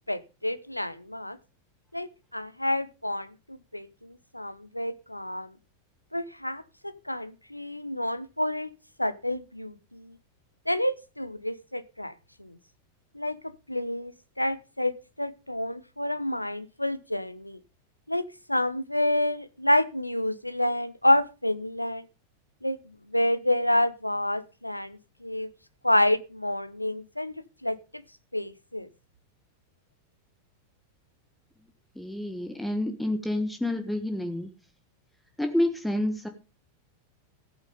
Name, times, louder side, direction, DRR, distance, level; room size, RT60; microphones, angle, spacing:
voice 1, 0.1-1.4 1.9-5.5 6.1-8.7 9.0-10.2 10.7-12.1 12.4-12.5 13.1-13.4 13.7-17.6 18.1-22.0 22.6-22.8 23.1-25.5 25.8-27.4 27.6-28.0 28.3-28.9, left 1 dB, 85° left, 15 dB, 0.8 m, -28 dB
voice 2, 32.0-34.5 35.4-36.3, left 1 dB, 5° left, 7 dB, 1.5 m, -28 dB
15.0 x 8.2 x 5.2 m, 0.31 s
figure-of-eight pair, 90°, 0 cm